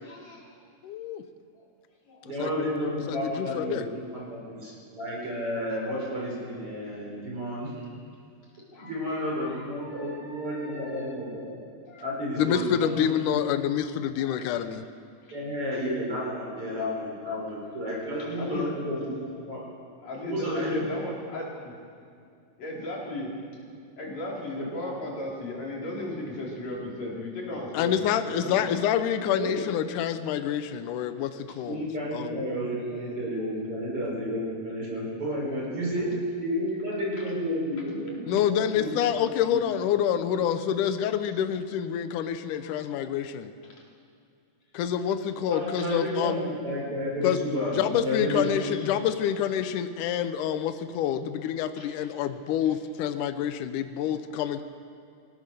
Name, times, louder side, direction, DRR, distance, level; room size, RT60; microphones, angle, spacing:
voice 1, 0.0-0.6 1.6-1.7 2.1-2.3 8.7-11.2 11.9-12.0 14.2-14.7 15.2-15.4 18.2-18.7 20.0-21.7 22.6-23.3 24.0-28.6 31.5-31.6 42.6-43.2 43.6-43.9 45.8-46.3 48.4-49.0 49.3-49.4 51.8-52.0 54.1-54.5, left 1 dB, 55° left, -4 dB, 5.4 m, -37 dB
voice 2, 0.8-1.2 2.4-2.5 3.1-3.8 12.4-14.8 27.7-31.8 32.1-32.4 38.3-43.5 44.7-46.4 47.2-47.4 47.8-54.6, left 9 dB, 80° left, 10 dB, 2.4 m, -27 dB
voice 3, 2.2-7.9 8.8-11.6 12.0-13.4 15.3-19.1 19.5-19.6 20.3-20.8 24.6-24.7 29.3-29.5 31.6-36.1 36.4-38.9 39.5-39.6 45.5-48.6, equal, 45° right, -4 dB, 6.7 m, -31 dB
24.5 x 18.0 x 6.8 m, 2.4 s
omnidirectional pair, 3.6 m